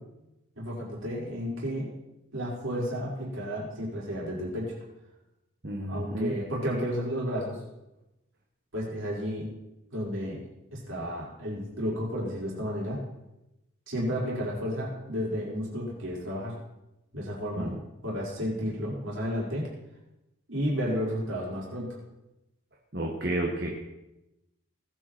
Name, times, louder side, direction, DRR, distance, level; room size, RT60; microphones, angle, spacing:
voice 1, 0.5-1.9 2.3-4.7 5.9-7.6 8.7-9.5 9.9-10.4 10.7-13.0 13.9-16.5 17.1-17.7 18.0-19.7 20.5-22.0, equal, 70° right, -5 dB, 5.2 m, -32 dB
voice 2, 5.6-6.3 17.6-17.8 22.9-23.7, right 1 dB, 50° right, 0 dB, 1.6 m, -31 dB
19.5 x 9.3 x 4.5 m, 0.93 s
head